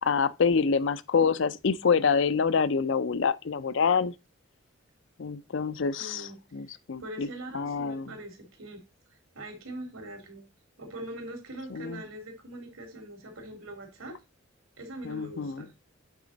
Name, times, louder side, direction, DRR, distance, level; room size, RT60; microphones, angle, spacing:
voice 1, 0.0-4.1 5.2-7.3 7.5-8.1 11.7-12.0 15.0-15.7, left 5 dB, 60° left, 0.5 m, -26 dB
voice 2, 6.0-6.4 7.0-8.8 9.1-10.4 10.8-14.2 14.8-15.7, right 1 dB, 85° right, 2.7 m, -42 dB
8.4 x 4.9 x 4.0 m
head